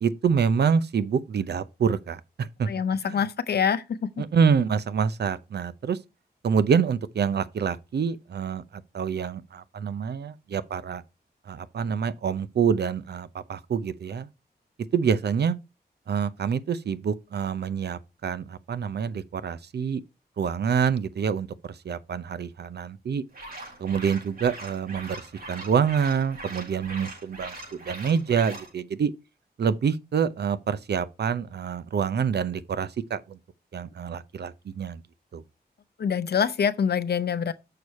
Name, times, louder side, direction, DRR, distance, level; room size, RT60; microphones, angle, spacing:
voice 1, 0.0-2.7 3.1-3.2 4.2-6.0 6.4-11.0 11.5-14.3 14.9-15.5 16.1-20.0 20.4-21.5 21.8-23.2 23.8-27.5 27.8-29.1 29.6-33.4 33.7-35.0 35.3-35.4, right 6 dB, 80° right, 0.7 m, -26 dB
voice 2, 2.6-4.2 36.0-37.5, left 7 dB, 70° left, 0.7 m, -25 dB
sound 1, 23.3-28.7, right 2 dB, 60° right, 5.6 m, -41 dB
6.8 x 6.4 x 4.2 m
wide cardioid pair, 145°, 17 cm